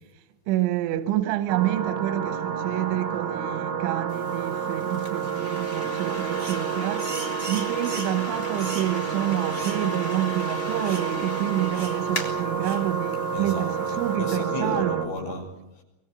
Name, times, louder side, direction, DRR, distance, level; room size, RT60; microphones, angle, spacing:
voice 1, 0.1-14.9, right 13 dB, 90° right, 3.4 m, -28 dB
sound 1, 1.5-15.1, right 6 dB, 70° right, 4.1 m, -29 dB
sound 2, 4.1-14.2, left 1 dB, 15° left, 3.2 m, -40 dB
sound 3, 6.4-6.7 7.0-8.2 8.6-8.9 9.5-9.8 10.1-10.2 10.8-11.1 11.7-12.0 12.6-12.9, right 3 dB, 20° right, 1.1 m, -39 dB
voice 2, 13.3-15.8, left 3 dB, 65° left, 7.9 m, -34 dB
24.0 x 22.0 x 7.8 m
omnidirectional pair, 5.2 m